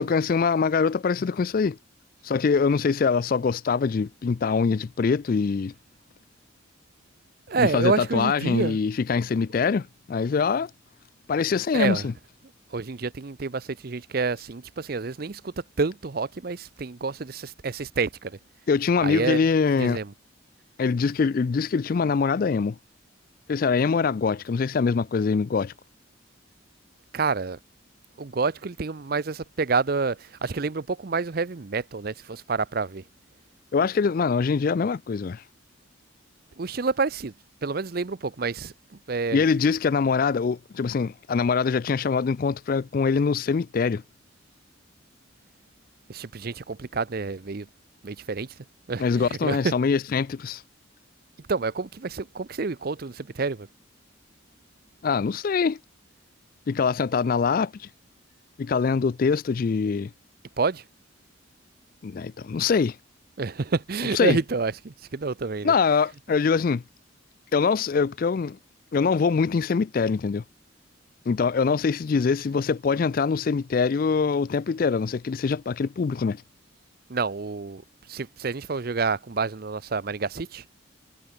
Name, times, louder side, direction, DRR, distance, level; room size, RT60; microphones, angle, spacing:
voice 1, 0.0-1.8 2.2-5.7 7.6-10.7 11.3-12.1 18.7-20.0 20.8-22.8 23.5-25.7 33.7-35.4 39.3-44.0 49.0-50.6 55.0-55.8 56.7-57.9 58.6-60.1 62.0-63.0 64.1-64.4 65.6-66.8 67.5-68.6 68.9-70.4 71.3-76.4, left 5 dB, 45° left, 0.3 m, -23 dB
voice 2, 7.5-8.8 11.7-12.1 12.7-18.3 19.0-19.4 19.8-20.1 27.1-27.6 28.2-33.0 36.6-37.3 37.6-38.7 39.1-39.4 46.1-47.7 48.0-48.5 48.9-49.7 51.5-53.7 60.6-60.8 63.4-65.7 77.1-77.8 78.1-80.8, right 4 dB, 45° right, 0.6 m, -28 dB
head